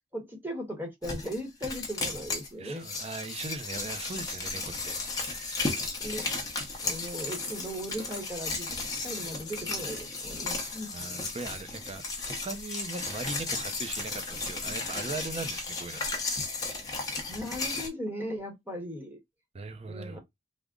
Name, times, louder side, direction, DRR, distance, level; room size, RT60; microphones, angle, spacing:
voice 1, 0.1-2.8 6.0-6.3 6.8-8.7 9.0-10.9 17.3-19.2 19.9-20.2, equal, 10° right, 0.9 m, -37 dB
Charcoal Foley, 1.0-2.5 2.8-17.9, left 3 dB, 20° left, 0.7 m, -34 dB
voice 2, 2.6-5.7 10.9-16.2 19.5-20.2, right 3 dB, 30° right, 0.5 m, -39 dB
3.5 x 2.0 x 3.6 m
head